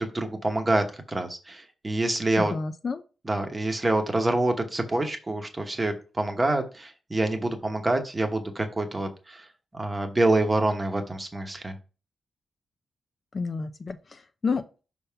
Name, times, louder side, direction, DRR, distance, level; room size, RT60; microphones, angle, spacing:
voice 1, 0.0-2.5 3.2-9.4 9.7-11.7, right 2 dB, 15° right, 5 dB, 1.0 m, -26 dB
voice 2, 2.4-3.0 13.3-14.8, left 4 dB, 35° left, 9 dB, 0.4 m, -30 dB
5.5 x 3.5 x 5.6 m, 0.33 s
wide cardioid pair, 145°, 0 cm